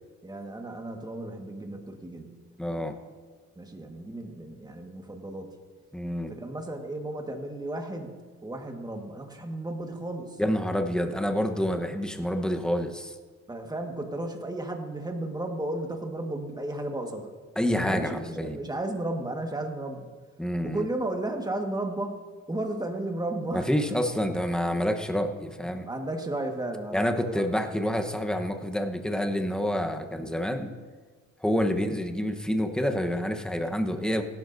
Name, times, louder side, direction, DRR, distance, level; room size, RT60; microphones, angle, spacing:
voice 1, 0.2-2.4 3.6-5.6 6.3-10.4 13.5-17.3 17.8-20.1 20.6-22.2 22.5-23.9 25.9-27.5, right 1 dB, 15° right, 3 dB, 1.7 m, -34 dB
voice 2, 2.6-2.9 5.9-6.3 10.4-13.1 17.6-18.6 20.4-20.9 23.5-25.9 26.9-30.7 31.4-34.2, equal, ahead, 5 dB, 1.1 m, -28 dB
17.0 x 12.0 x 2.7 m, 1.5 s
cardioid pair, 90°, 30 cm